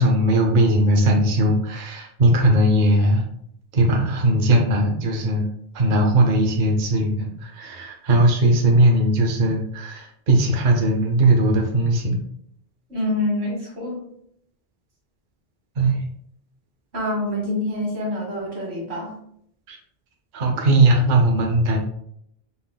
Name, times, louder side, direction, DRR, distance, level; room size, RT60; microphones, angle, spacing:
voice 1, 0.0-3.2 3.7-5.5 5.7-12.2 15.8-16.0 19.7-19.8 20.3-21.8, right 1 dB, 50° right, 2 dB, 0.8 m, -19 dB
voice 2, 12.9-14.0 16.9-19.1, left 1 dB, 90° right, -2 dB, 1.8 m, -26 dB
5.4 x 3.8 x 2.2 m, 0.70 s
omnidirectional pair, 1.1 m